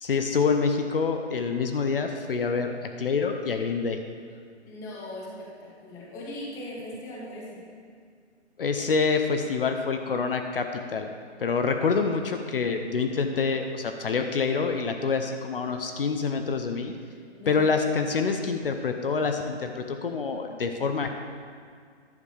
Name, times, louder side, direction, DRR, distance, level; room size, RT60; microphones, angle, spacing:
voice 1, 0.0-4.0 8.6-11.1 11.4-16.9 17.5-21.2, left 5 dB, 50° left, 5 dB, 0.7 m, -26 dB
voice 2, 4.6-7.6 17.3-17.7, left 1 dB, 10° left, -4 dB, 0.9 m, -39 dB
10.5 x 6.7 x 4.9 m, 2.1 s
figure-of-eight pair, 145°, 35 cm